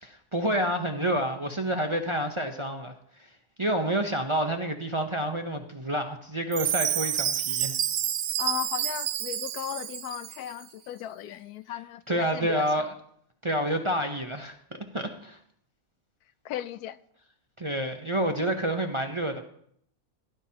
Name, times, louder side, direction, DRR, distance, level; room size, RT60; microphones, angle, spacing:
voice 1, 0.0-2.9 3.2-3.3 3.6-7.7 12.1-12.9 13.4-15.4 17.6-19.4, right 1 dB, 25° right, 0.7 m, -28 dB
Chime, 6.5-10.5, right 11 dB, 65° right, 0.6 m, -29 dB
voice 2, 8.4-12.6 16.4-17.0, left 12 dB, 85° left, 1.1 m, -36 dB
16.5 x 11.5 x 2.9 m
omnidirectional pair, 1.6 m